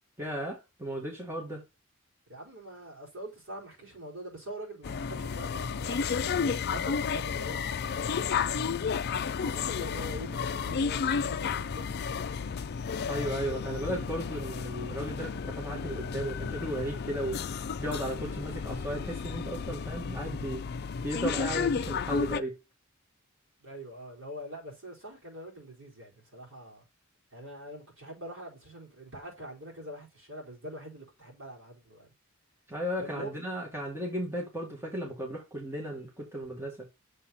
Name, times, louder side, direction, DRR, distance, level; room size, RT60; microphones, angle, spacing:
voice 1, 0.2-1.6 10.5-10.8 13.1-17.4 17.8-20.7 21.0-22.6 32.7-36.9, right 1 dB, 10° right, 1.8 m, -35 dB
voice 2, 2.3-8.9 9.4-11.9 12.2-12.6 23.6-26.8 27.3-32.1 33.0-33.3, equal, 65° right, 4.6 m, -44 dB
sound 1, 4.8-22.4, left 6 dB, 50° left, 0.4 m, -32 dB
6.7 x 5.8 x 4.0 m
head